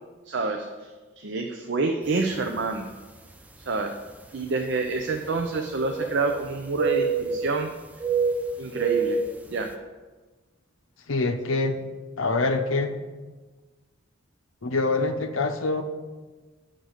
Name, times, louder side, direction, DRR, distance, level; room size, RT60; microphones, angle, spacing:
voice 1, 0.3-2.9 3.6-3.9 4.3-7.7 8.6-9.2 9.5-9.7, right 3 dB, 60° right, 4 dB, 0.5 m, -28 dB
sound 1, 2.3-2.5 3.3-3.4 5.2-6.5 6.8-7.6 8.0-9.4, right 5 dB, 10° right, 0.5 m, -27 dB
voice 2, 11.1-11.8 12.2-13.0 14.6-15.8, left 3 dB, 85° left, 7 dB, 0.7 m, -25 dB
9.4 x 3.8 x 6.5 m, 1.3 s
head